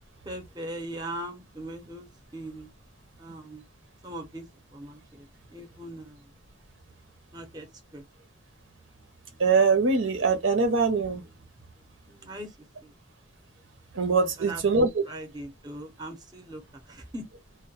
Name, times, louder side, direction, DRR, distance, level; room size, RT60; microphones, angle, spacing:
voice 1, 0.2-2.7 3.2-3.7 4.0-4.5 4.7-5.3 5.5-6.3 7.3-7.7 7.9-8.0 12.1-12.6 12.8-12.9 14.4-17.3, right 1 dB, 20° right, 0.6 m, -40 dB
voice 2, 9.4-11.2 13.9-15.0, right 4 dB, 90° right, 0.7 m, -23 dB
2.2 x 2.1 x 2.8 m
head